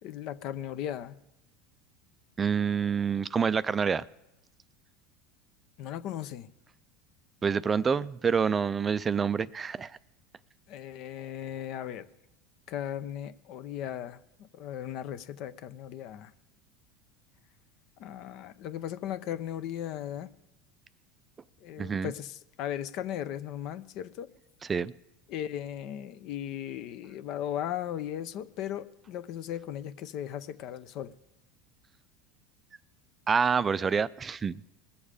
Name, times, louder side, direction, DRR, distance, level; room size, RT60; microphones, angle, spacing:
voice 1, 0.0-1.2 5.8-6.5 10.7-12.1 12.7-14.2 14.5-16.3 18.0-20.3 21.6-24.3 25.3-31.1, left 10 dB, 60° left, 14 dB, 0.6 m, -37 dB
voice 2, 2.4-4.1 7.4-9.9 21.8-22.1 24.7-24.9 33.3-34.6, right 6 dB, 25° right, 16 dB, 0.3 m, -27 dB
20.0 x 7.2 x 4.9 m, 0.93 s
supercardioid pair, 110°, 0 cm